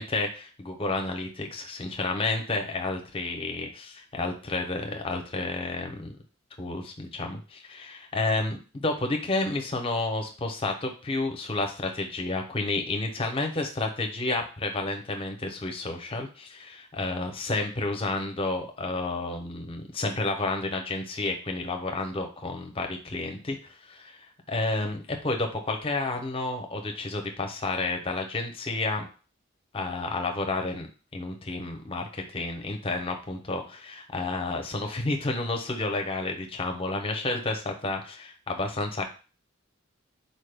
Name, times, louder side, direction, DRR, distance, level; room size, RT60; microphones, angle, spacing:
voice 1, 0.0-6.2 6.6-29.1 29.7-30.9 31.1-39.1, left 2 dB, 25° left, 4 dB, 0.5 m, -31 dB
4.1 x 2.2 x 3.3 m, 0.34 s
head